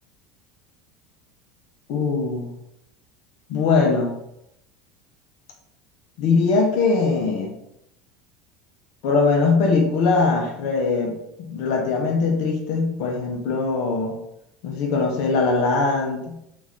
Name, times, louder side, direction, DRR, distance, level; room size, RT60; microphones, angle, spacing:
voice 1, 1.9-2.5 3.5-4.1 6.2-7.5 9.0-14.2 14.6-16.4, left 4 dB, 65° left, 2 dB, 0.6 m, -21 dB
3.7 x 2.4 x 2.9 m, 0.80 s
hypercardioid pair, 95°, 0 cm